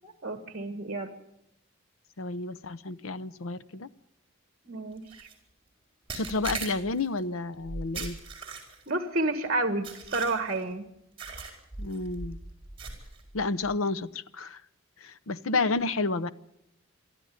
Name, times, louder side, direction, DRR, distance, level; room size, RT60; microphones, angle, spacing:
voice 1, 0.0-1.1 4.7-5.0 8.9-10.8 15.5-15.7, right 2 dB, 40° right, 9 dB, 1.7 m, -30 dB
voice 2, 2.2-3.9 6.1-8.2 11.8-12.4 13.3-14.6 15.0-16.3, left 3 dB, 70° left, 13 dB, 0.8 m, -30 dB
sound 1, 5.1-5.3 6.1-7.1 7.9-8.9 9.8-10.6 11.2-11.6 11.9-12.1 12.8-13.2, right 5 dB, 25° right, 4.5 m, -39 dB
sound 2, 6.4-7.0 7.6-8.3 11.2-13.8, right 1 dB, 5° left, 1.4 m, -43 dB
22.5 x 13.0 x 9.3 m, 0.82 s
head